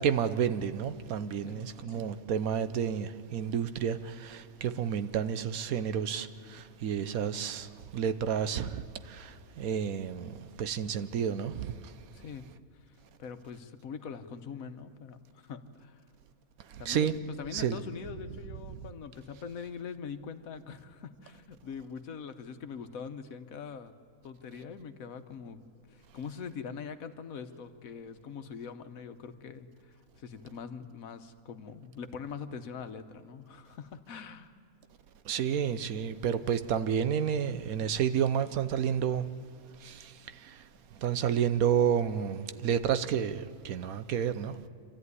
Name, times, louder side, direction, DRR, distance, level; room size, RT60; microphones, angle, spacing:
voice 1, 0.0-11.9 16.7-17.2 17.5-17.8 35.2-39.3 39.8-40.7 40.9-44.6, right 8 dB, 80° right, 1.2 m, -30 dB
voice 2, 1.4-2.1 12.1-12.5 12.9-13.0 13.2-16.0 16.8-23.9 24.2-25.6 25.9-34.5, left 6 dB, 75° left, 1.4 m, -43 dB
27.0 x 13.0 x 9.6 m
omnidirectional pair, 1.5 m